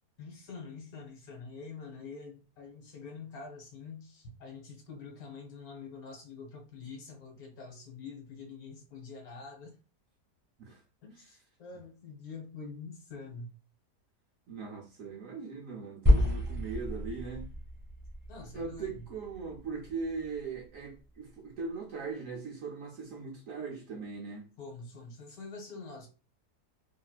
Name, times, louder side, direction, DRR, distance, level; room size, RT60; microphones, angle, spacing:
voice 1, 0.2-9.7 11.0-13.6 18.3-19.0 24.6-26.1, left 4 dB, 65° left, 1.5 m, -46 dB
voice 2, 14.5-17.5 18.5-24.5, right 4 dB, 65° right, 0.9 m, -40 dB
sound 1, 16.1-20.4, left 1 dB, 10° right, 1.1 m, -30 dB
3.1 x 2.9 x 2.3 m
omnidirectional pair, 1.8 m